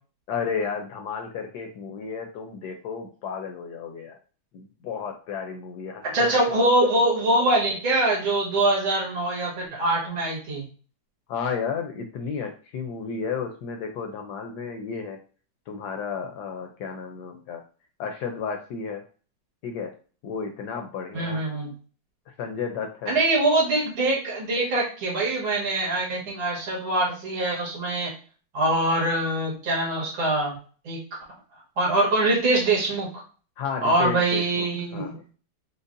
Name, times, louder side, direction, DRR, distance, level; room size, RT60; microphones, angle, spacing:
voice 1, 0.3-4.2 4.5-6.3 11.3-15.2 15.7-17.6 18.0-19.0 19.6-19.9 20.2-21.4 22.4-23.2 33.6-34.7 34.9-35.2, left 6 dB, 70° left, 4 dB, 1.0 m, -32 dB
voice 2, 6.0-10.7 21.1-21.7 23.1-28.1 28.5-30.6 30.8-31.0 31.8-33.1 33.8-35.2, right 2 dB, 90° right, -4 dB, 2.4 m, -23 dB
5.2 x 2.1 x 2.5 m, 0.39 s
omnidirectional pair, 2.1 m